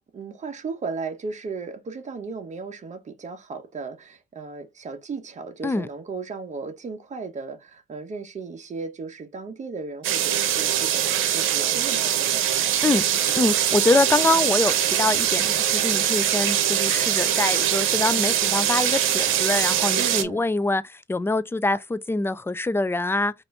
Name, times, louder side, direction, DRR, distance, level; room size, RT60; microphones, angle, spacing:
voice 1, 0.0-12.5 19.9-20.4, right 4 dB, 35° right, 1.0 m, -35 dB
sound 1, 10.0-20.2, right 10 dB, 90° right, 0.8 m, -22 dB
voice 2, 13.3-23.3, left 2 dB, 10° left, 0.4 m, -24 dB
4.1 x 2.6 x 3.2 m
cardioid pair, 90°, 20 cm